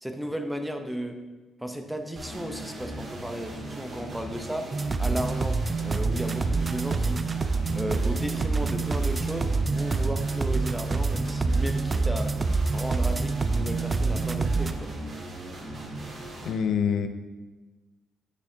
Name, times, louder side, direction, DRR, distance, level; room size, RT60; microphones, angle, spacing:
voice 1, 0.0-1.2 1.6-4.7 5.0-7.2 7.7-12.4 12.7-14.9, equal, 5° right, 6 dB, 0.8 m, -34 dB
sound 1, 2.2-16.5, right 1 dB, 50° right, 2.6 m, -38 dB
sound 2, 4.7-14.7, right 4 dB, 30° right, 0.4 m, -26 dB
voice 2, 16.4-17.1, left 7 dB, 70° left, 8 dB, 0.6 m, -25 dB
9.3 x 6.9 x 2.8 m, 1.2 s
cardioid pair, 90°, 0 cm